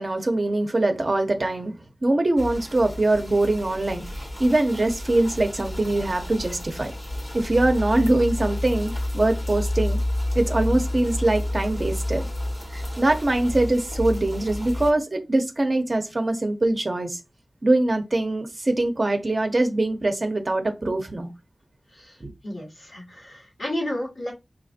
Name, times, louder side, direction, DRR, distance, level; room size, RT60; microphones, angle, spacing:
voice 1, 0.0-1.7 2.0-6.9 7.3-10.0 10.3-12.3 12.7-17.2 17.6-21.3 22.2-22.3, right 2 dB, 50° right, 0.8 m, -23 dB
sound 1, 2.4-14.9, left 1 dB, 35° left, 1.3 m, -30 dB
voice 2, 22.4-24.3, left 1 dB, 70° left, 1.9 m, -32 dB
4.6 x 2.5 x 2.5 m
cardioid pair, 45°, 0 cm